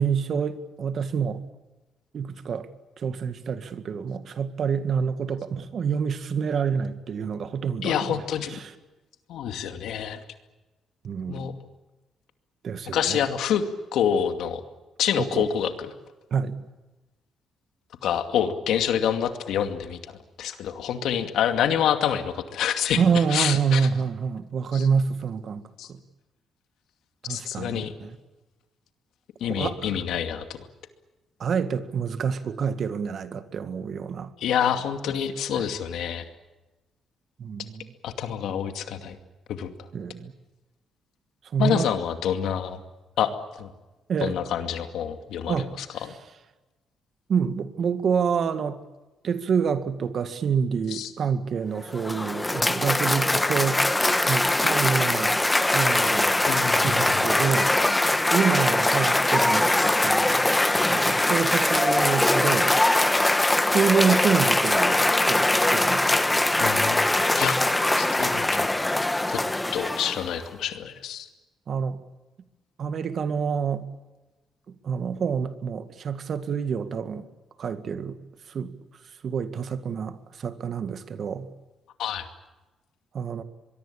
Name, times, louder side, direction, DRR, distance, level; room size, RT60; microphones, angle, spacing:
voice 1, 0.0-1.4 2.1-2.7 3.0-8.2 8.5-8.7 11.0-11.6 12.6-13.2 15.2-15.5 16.3-16.6 23.0-26.0 27.2-28.2 29.5-30.0 31.4-34.3 35.5-35.7 37.4-37.9 39.9-40.3 41.5-41.9 44.1-44.4 45.5-45.7 47.3-48.8 49.2-53.8 54.3-55.4 55.7-56.4 56.7-57.8 58.3-60.5 60.9-62.8 63.5-66.3 71.7-72.0 72.8-73.9 74.8-77.3 77.6-78.2 78.5-78.7 79.2-81.5 83.1-83.4, right 6 dB, 55° right, 1.9 m, -27 dB
voice 2, 7.8-8.6 9.3-10.2 11.3-11.5 12.9-13.6 13.9-14.6 15.0-15.9 18.0-20.0 20.4-23.0 23.3-23.9 24.7-24.9 25.8-25.9 27.3-27.9 29.4-30.6 34.4-36.2 38.0-39.2 39.5-39.7 41.6-42.8 43.2-43.7 44.2-46.1 50.9-51.1 56.4-57.2 63.7-64.1 66.6-67.6 67.9-68.7 69.3-69.4 69.7-71.3 82.0-82.3, left 9 dB, 80° left, 2.4 m, -27 dB
Cheering / Applause, 51.8-70.4, left 1 dB, 10° left, 1.2 m, -22 dB
24.5 x 22.0 x 8.7 m
cardioid pair, 90°, 0 cm